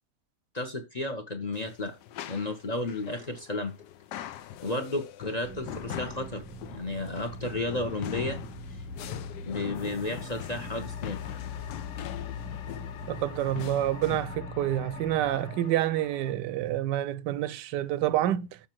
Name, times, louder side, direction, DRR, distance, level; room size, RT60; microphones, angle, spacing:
voice 1, 0.5-1.9 2.3-3.7 4.6-6.4 6.7-8.4 9.4-11.2, left 2 dB, 30° left, 0.8 m, -32 dB
sound 1, 1.5-14.3, left 11 dB, 80° left, 1.2 m, -42 dB
sound 2, 5.4-15.4, left 2 dB, 10° right, 1.0 m, -41 dB
sound 3, 9.7-16.4, left 8 dB, 60° left, 0.8 m, -46 dB
voice 2, 13.1-18.6, right 12 dB, 90° right, 1.2 m, -28 dB
7.0 x 5.1 x 4.5 m
omnidirectional pair, 1.8 m